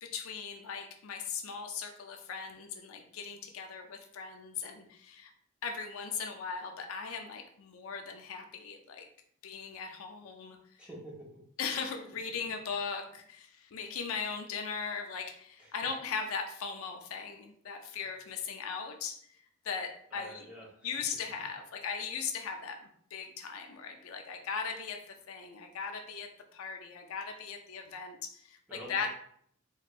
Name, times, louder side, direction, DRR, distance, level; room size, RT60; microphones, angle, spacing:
voice 1, 0.0-5.3 5.6-9.1 9.4-10.8 11.6-19.4 19.6-20.5 20.8-22.8 23.1-29.1, left 5 dB, 80° left, 4 dB, 0.4 m, -39 dB
voice 2, 10.8-11.1 15.6-15.7 20.1-20.9 28.7-29.1, equal, 5° right, -5 dB, 0.9 m, -47 dB
3.3 x 3.1 x 2.4 m, 0.65 s
head